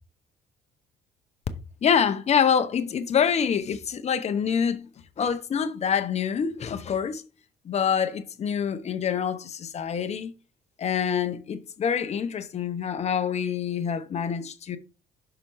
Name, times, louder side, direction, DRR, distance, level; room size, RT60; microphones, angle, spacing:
voice 1, 1.8-4.9 5.2-7.2 7.6-10.3 10.8-14.8, left 7 dB, 40° left, 0.9 m, -26 dB
5.8 x 4.3 x 5.5 m
cardioid pair, 110°, 17 cm